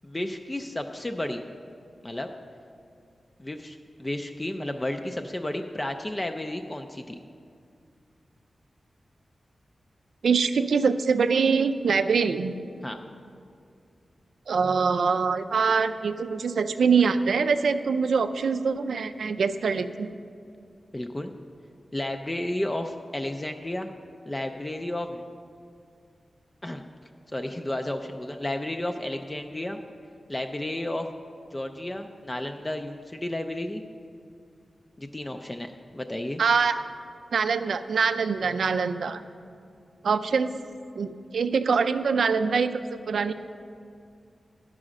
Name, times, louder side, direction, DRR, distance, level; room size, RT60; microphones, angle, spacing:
voice 1, 0.0-1.4 2.0-2.3 3.4-7.2 12.8-13.0 20.9-21.3 21.9-23.9 24.3-25.2 26.6-26.8 27.3-29.8 30.3-31.1 31.5-33.8 35.0-36.4, left 1 dB, 15° left, 5 dB, 0.3 m, -32 dB
voice 2, 10.2-12.5 14.5-20.1 36.4-36.8 37.3-39.2 40.0-40.5 41.0-42.8 43.1-43.3, right 5 dB, 85° right, 10 dB, 0.4 m, -24 dB
11.5 x 4.9 x 6.3 m, 2.4 s
wide cardioid pair, 150°, 0 cm